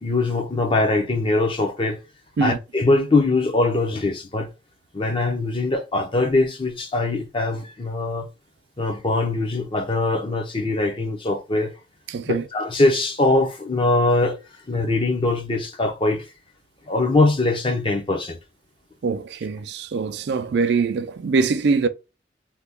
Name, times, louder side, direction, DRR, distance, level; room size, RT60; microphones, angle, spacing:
voice 1, 0.0-2.0 2.4-4.5 4.9-8.3 8.8-11.7 12.2-14.4 14.7-16.2 16.9-18.4, left 2 dB, 30° left, 0.7 m, -22 dB
voice 2, 12.1-12.4 19.0-21.9, right 4 dB, 70° right, 0.4 m, -23 dB
2.9 x 2.3 x 3.5 m
head